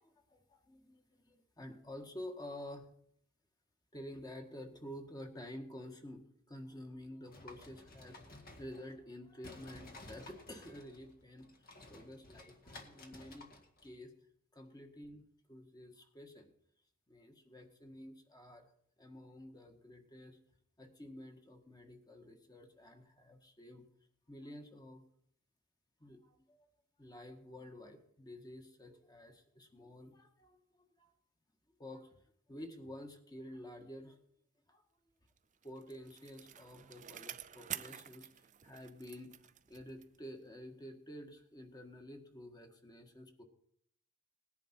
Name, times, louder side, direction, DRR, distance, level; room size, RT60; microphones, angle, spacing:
voice 1, 0.0-2.9 3.9-13.5 13.8-14.1 14.5-16.5 17.1-18.7 19.0-20.4 20.8-23.9 24.3-25.0 26.0-26.7 27.0-31.1 31.8-32.2 32.5-34.2 34.7-34.8 35.6-43.4, left 1 dB, 20° left, 5 dB, 1.7 m, -50 dB
sound 1, 7.3-9.1 9.4-14.0, left 2 dB, 45° left, 1.8 m, -55 dB
Bicycle, 35.4-40.3 40.6-40.7, right 11 dB, 40° right, 0.5 m, -49 dB
19.0 x 10.5 x 4.5 m, 0.69 s
head